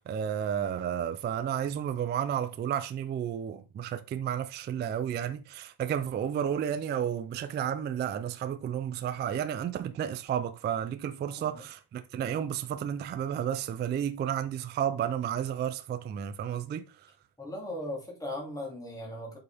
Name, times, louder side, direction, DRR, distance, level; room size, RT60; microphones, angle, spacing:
voice 1, 0.0-17.1, right 9 dB, 25° right, 0.4 m, -32 dB
voice 2, 11.3-11.6 17.4-19.4, left 1 dB, 5° left, 3.1 m, -38 dB
7.8 x 5.8 x 3.4 m
cardioid pair, 160°, 48 cm